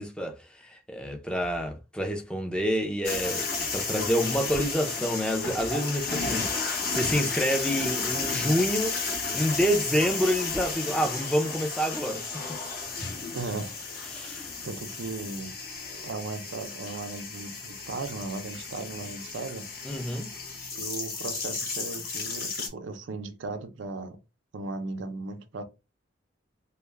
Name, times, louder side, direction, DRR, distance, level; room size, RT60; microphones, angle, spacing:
voice 1, 0.0-6.5 6.9-9.0 9.3-12.4 14.1-14.5 19.8-20.3, equal, 5° left, 0.5 m, -28 dB
sound 1, 3.0-22.7, left 4 dB, 50° left, 0.9 m, -33 dB
voice 2, 13.3-13.7 14.1-15.5 16.0-19.7 20.7-24.2 24.5-25.6, right 3 dB, 70° right, 0.5 m, -37 dB
2.3 x 2.1 x 3.1 m
head